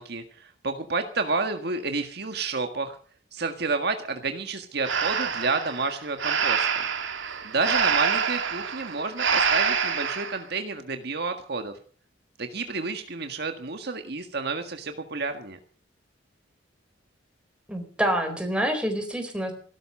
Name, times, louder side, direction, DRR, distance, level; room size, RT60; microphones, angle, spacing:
voice 1, 0.0-3.0 3.3-6.9 7.4-11.7 12.4-15.6, right 3 dB, 60° right, 6 dB, 1.6 m, -30 dB
Breathing, 4.8-10.4, right 6 dB, 90° right, 2.4 m, -26 dB
voice 2, 17.7-19.5, equal, 5° right, 4 dB, 4.2 m, -27 dB
16.5 x 12.5 x 6.5 m, 0.43 s
head